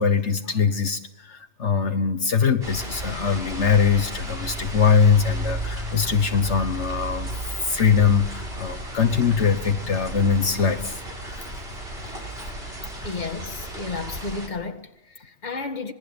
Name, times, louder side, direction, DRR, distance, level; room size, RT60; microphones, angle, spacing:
voice 1, 0.0-7.3 7.6-11.5 12.4-12.5, left 6 dB, 70° left, 1.5 m, -22 dB
sound 1, 2.6-14.5, right 1 dB, 50° right, 5.5 m, -33 dB
voice 2, 13.0-15.9, left 3 dB, 35° left, 1.8 m, -32 dB
27.0 x 21.0 x 8.7 m
omnidirectional pair, 1.3 m